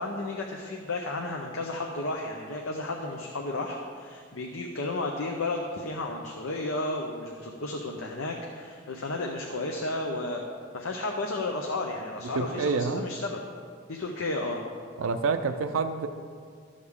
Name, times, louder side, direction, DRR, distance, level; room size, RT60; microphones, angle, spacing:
voice 1, 0.0-10.4 10.7-13.4 13.9-14.6, left 2 dB, 80° left, 1 dB, 0.8 m, -33 dB
voice 2, 12.4-13.0 15.0-16.1, right 4 dB, 85° right, 9 dB, 0.5 m, -27 dB
13.0 x 6.5 x 3.6 m, 2.1 s
head